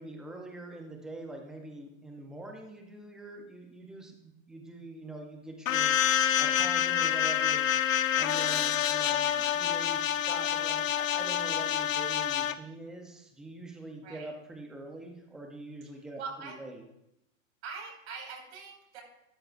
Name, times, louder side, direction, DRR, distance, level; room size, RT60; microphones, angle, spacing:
voice 1, 0.0-5.9 6.4-7.6 8.1-16.8, right 2 dB, ahead, 2 dB, 0.5 m, -44 dB
sound 1, 5.7-12.5, left 10 dB, 75° left, 0.8 m, -27 dB
voice 2, 16.2-16.5 17.6-19.0, right 5 dB, 55° right, 0 dB, 4.9 m, -42 dB
13.5 x 13.0 x 2.4 m, 0.85 s
hypercardioid pair, 155°, 40 cm